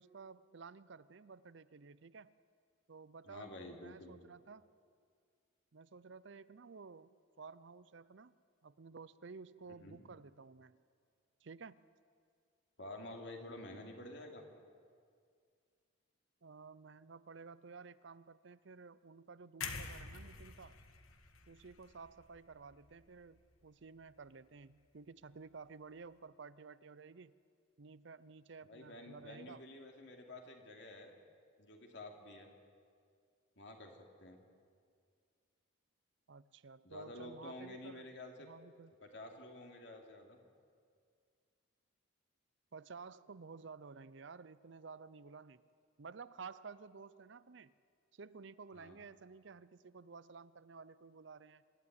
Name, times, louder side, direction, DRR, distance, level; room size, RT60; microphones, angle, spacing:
voice 1, 0.0-2.3 2.9-4.7 5.7-8.4 8.6-10.8 11.4-11.8 16.4-20.8 21.5-27.3 27.8-29.7 36.3-38.1 38.4-39.0 42.7-45.6 46.0-47.7 48.1-51.6, right 5 dB, 60° right, 16 dB, 0.6 m, -53 dB
voice 2, 3.3-4.3 9.7-10.0 12.8-14.5 28.6-31.1 31.6-32.5 33.6-34.4 36.8-38.5 39.0-40.4 48.7-49.0, left 1 dB, 55° left, 2 dB, 2.9 m, -50 dB
sound 1, 19.6-23.6 24.0-24.2, left 5 dB, 90° left, 1.6 m, -48 dB
26.0 x 12.5 x 9.7 m, 2.2 s
head